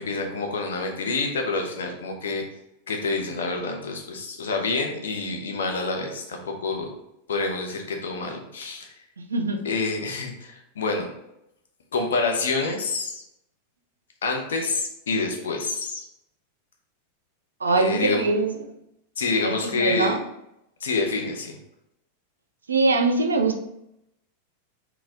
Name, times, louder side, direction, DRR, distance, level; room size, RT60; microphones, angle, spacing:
voice 1, 0.0-2.4 2.9-6.9 7.3-8.9 9.6-11.1 11.9-13.2 14.2-16.0 17.8-18.3 19.2-20.1 20.8-21.6, left 3 dB, 65° left, 2 dB, 0.7 m, -27 dB
voice 2, 9.3-9.6 17.6-18.6 19.4-20.2 22.7-23.6, right 3 dB, 75° right, 6 dB, 0.4 m, -22 dB
4.1 x 2.2 x 3.8 m, 0.82 s
figure-of-eight pair, 90°, 0 cm